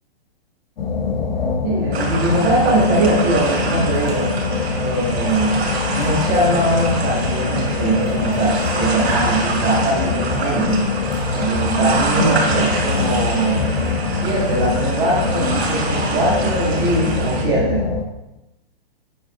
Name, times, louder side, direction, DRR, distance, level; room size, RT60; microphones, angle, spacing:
sound 1, 0.8-18.0, left 4 dB, 65° left, 1.2 m, -23 dB
voice 1, 1.6-4.3 4.8-10.9 11.3-13.7 14.1-17.8, right 2 dB, 15° right, -5 dB, 1.5 m, -21 dB
sound 2, 1.9-17.4, right 3 dB, 90° right, 3.1 m, -27 dB
8.7 x 5.4 x 4.2 m, 0.94 s
hypercardioid pair, 180°, 31 cm